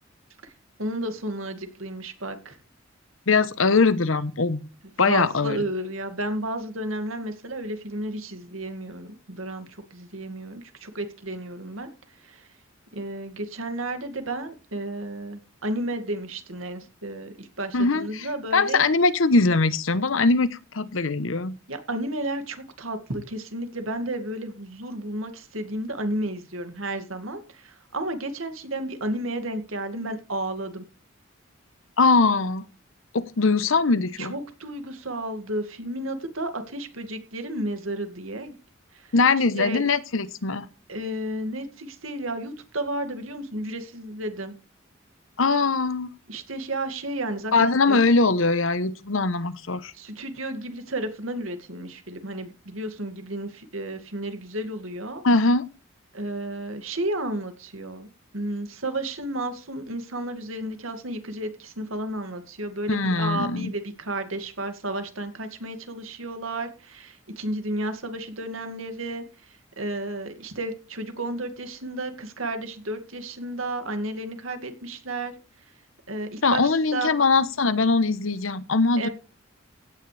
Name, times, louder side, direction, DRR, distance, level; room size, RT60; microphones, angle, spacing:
voice 1, 0.8-2.6 5.1-11.9 12.3-12.4 12.9-18.8 21.7-30.8 34.2-38.5 39.5-39.8 40.9-44.5 46.3-48.0 50.0-55.2 56.1-69.2 69.8-75.3 76.1-77.1 79.0-79.1, right 1 dB, 90° right, 7 dB, 2.2 m, -32 dB
voice 2, 3.3-4.6 5.0-5.6 17.7-21.6 32.0-32.6 33.1-34.3 39.1-40.7 45.4-46.1 47.5-49.9 55.2-55.7 62.9-63.7 76.4-79.1, left 3 dB, 80° left, 14 dB, 1.0 m, -21 dB
16.0 x 9.6 x 3.4 m, 0.32 s
head